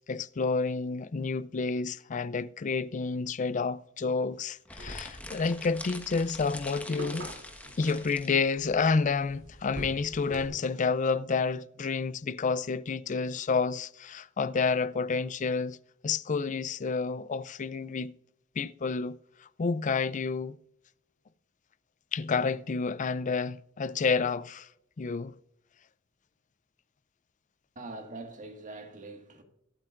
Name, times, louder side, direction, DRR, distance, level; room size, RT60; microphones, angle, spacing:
voice 1, 0.0-7.3 7.8-15.8 16.0-18.1 18.6-20.6 22.1-24.7 25.0-25.3, left 4 dB, 40° left, 0.4 m, -29 dB
sound 1, 4.6-8.3, left 2 dB, 5° left, 1.3 m, -44 dB
sound 2, 4.8-10.5, right 1 dB, 70° right, 2.9 m, -45 dB
voice 2, 27.8-29.4, right 2 dB, 40° right, 1.8 m, -43 dB
23.0 x 8.8 x 2.5 m
head